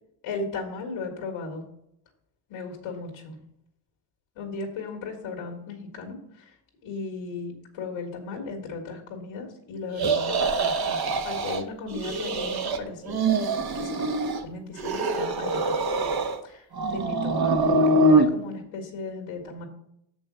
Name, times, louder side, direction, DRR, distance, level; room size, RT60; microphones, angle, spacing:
voice 1, 0.2-1.6 2.5-3.3 4.3-6.5 6.8-11.0 11.2-14.1 14.4-16.0 16.4-16.6 16.9-19.6, left 3 dB, 85° left, 1 dB, 1.8 m, -36 dB
sound 1, 10.0-11.6 11.9-12.8 13.0-14.4 14.8-16.4 16.7-18.3, right 2 dB, 50° right, 1.2 m, -24 dB
6.6 x 5.4 x 6.1 m, 0.74 s
supercardioid pair, 60°, 49 cm